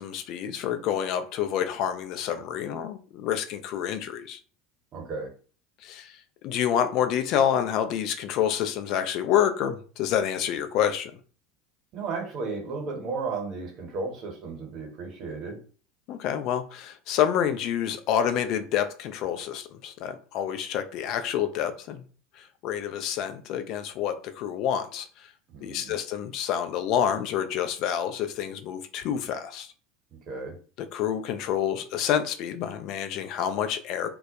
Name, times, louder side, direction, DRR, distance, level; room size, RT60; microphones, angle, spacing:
voice 1, 0.0-4.4 5.8-11.2 16.1-22.0 22.3-25.3 25.6-29.7 30.8-34.1, left 9 dB, 55° left, 0.4 m, -28 dB
voice 2, 4.9-5.3 11.9-15.6 25.5-26.0 30.1-30.6, right 4 dB, 45° right, 0.9 m, -34 dB
2.2 x 2.1 x 2.8 m
hypercardioid pair, 75°, 0 cm